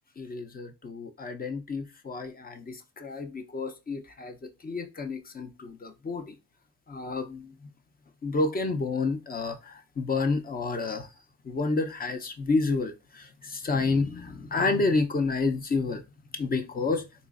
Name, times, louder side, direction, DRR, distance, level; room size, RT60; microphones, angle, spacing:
voice 1, 0.2-6.3 6.9-7.7 8.2-11.1 11.4-16.0 16.3-17.0, left 3 dB, 30° left, 0.6 m, -30 dB
4.0 x 3.0 x 2.4 m
cardioid pair, 90°, 30 cm